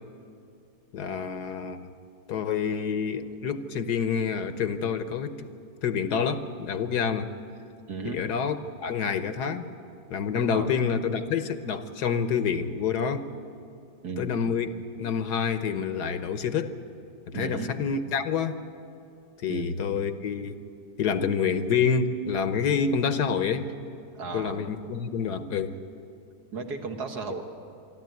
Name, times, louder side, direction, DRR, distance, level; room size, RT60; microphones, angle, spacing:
voice 1, 0.9-1.9 2.3-5.5 5.8-7.3 8.0-9.7 10.1-13.3 14.2-14.7 15.0-16.8 17.3-18.6 19.4-20.6 21.0-23.7 24.3-25.8, left 6 dB, 70° left, 10 dB, 1.4 m, -27 dB
voice 2, 7.9-8.3 10.5-10.7 14.0-14.3 17.3-17.7 19.5-19.7 24.1-24.6 26.5-27.4, right 4 dB, 65° right, 4 dB, 2.0 m, -34 dB
26.5 x 12.5 x 9.3 m, 2.5 s
omnidirectional pair, 1.8 m